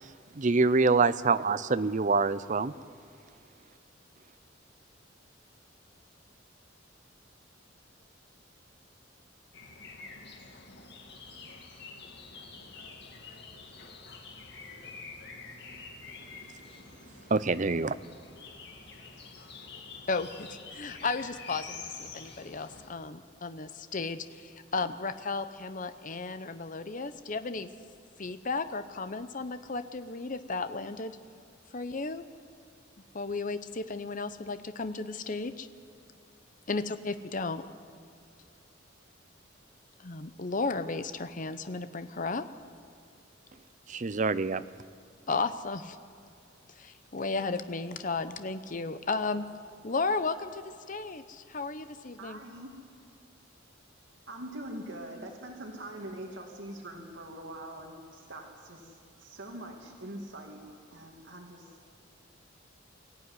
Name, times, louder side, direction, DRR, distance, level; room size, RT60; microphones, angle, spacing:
voice 1, 0.4-2.7 17.3-17.9 43.9-44.6, right 4 dB, 40° right, 15 dB, 0.6 m, -25 dB
sound 1, 9.5-22.9, left 4 dB, 60° left, 2.3 m, -47 dB
voice 2, 20.1-27.7 28.2-31.2 31.7-32.2 33.1-35.7 36.7-37.6 40.0-42.4 45.3-46.0 46.8-49.4 49.8-52.4, left 3 dB, 40° left, 11 dB, 0.8 m, -34 dB
voice 3, 52.2-52.7 54.3-60.6 60.9-61.7, right 1 dB, 65° right, 2 dB, 2.4 m, -43 dB
23.0 x 14.5 x 9.7 m, 2.4 s
head